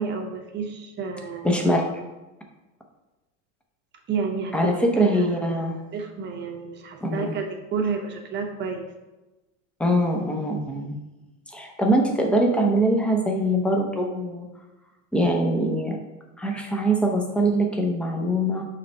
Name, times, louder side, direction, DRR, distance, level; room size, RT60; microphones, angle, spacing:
voice 1, 0.0-1.5 4.1-5.2 5.9-8.9, right 5 dB, 25° right, 3 dB, 0.8 m, -30 dB
voice 2, 1.4-1.9 4.5-5.8 7.0-7.3 9.8-10.9 11.5-14.5 15.1-16.0 16.4-18.7, right 1 dB, 5° left, 1 dB, 0.6 m, -23 dB
6.8 x 3.3 x 5.4 m, 1.0 s
supercardioid pair, 155°, 40 cm